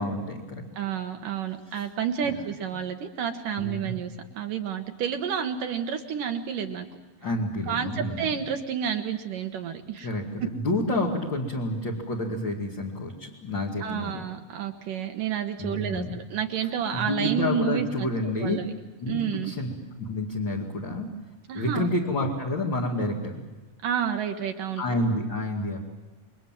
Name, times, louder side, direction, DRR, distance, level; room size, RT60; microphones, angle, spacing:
voice 1, 0.0-0.6 2.3-2.4 3.6-4.0 7.2-8.2 10.0-14.3 15.6-16.2 16.9-18.6 19.0-19.7 20.0-21.1 21.5-23.4 24.8-25.8, left 1 dB, 35° left, -3 dB, 2.7 m, -29 dB
voice 2, 0.8-6.9 7.7-10.1 10.4-10.5 13.8-18.1 18.4-18.7 19.1-19.5 21.5-21.9 23.8-24.8, right 8 dB, 65° right, 5 dB, 2.6 m, -30 dB
28.5 x 23.0 x 7.6 m, 1.1 s
omnidirectional pair, 4.4 m